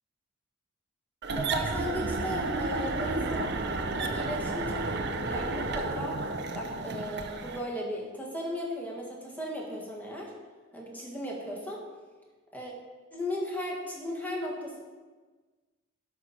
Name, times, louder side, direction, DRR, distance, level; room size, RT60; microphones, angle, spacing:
sound 1, 1.2-7.7, right 3 dB, 55° right, 0.7 m, -32 dB
voice 1, 1.3-3.5 3.9-6.2 6.5-10.3 10.7-11.8 12.5-12.7 13.1-14.8, equal, 10° left, -3 dB, 1.7 m, -36 dB
11.0 x 6.0 x 4.2 m, 1.3 s
head